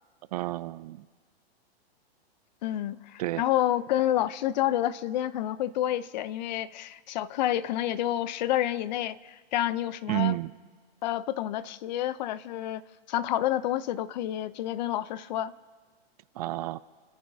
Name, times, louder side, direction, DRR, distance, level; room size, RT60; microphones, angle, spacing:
voice 1, 0.3-1.1 3.2-3.4 10.1-10.5 16.4-16.8, right 15 dB, 40° right, 16 dB, 0.4 m, -30 dB
voice 2, 2.6-10.4 11.0-12.8 13.1-15.5, left 12 dB, 45° left, 17 dB, 0.6 m, -29 dB
29.5 x 14.0 x 2.8 m, 1.5 s
hypercardioid pair, 150°, 31 cm